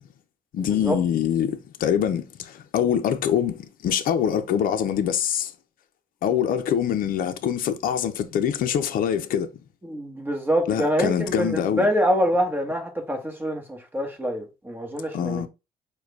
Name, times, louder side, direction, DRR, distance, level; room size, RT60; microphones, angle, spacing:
voice 1, 0.5-5.5 6.2-9.5 10.7-11.9 15.1-15.5, left 9 dB, 55° left, 0.6 m, -24 dB
voice 2, 9.8-15.5, equal, 10° right, 1.3 m, -25 dB
4.8 x 2.3 x 4.6 m
cardioid pair, 110°, 17 cm